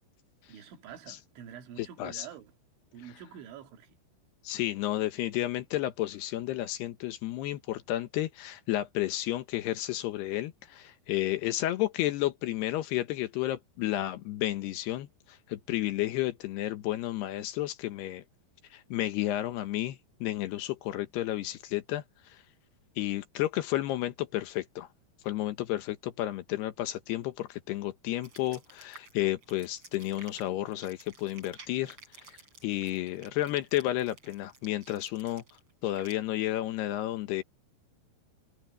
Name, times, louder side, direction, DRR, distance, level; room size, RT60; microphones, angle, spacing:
voice 1, 0.5-2.5 2.9-4.0, right 9 dB, 90° right, 4.7 m, -47 dB
voice 2, 1.8-2.3 4.4-18.2 18.7-22.0 22.3-22.4 23.0-24.9 25.2-32.0 32.6-35.4 35.8-37.4, left 15 dB, 75° left, 2.9 m, -32 dB
sound 1, 28.2-36.1, right 3 dB, 30° right, 5.8 m, -53 dB
omnidirectional pair, 5.2 m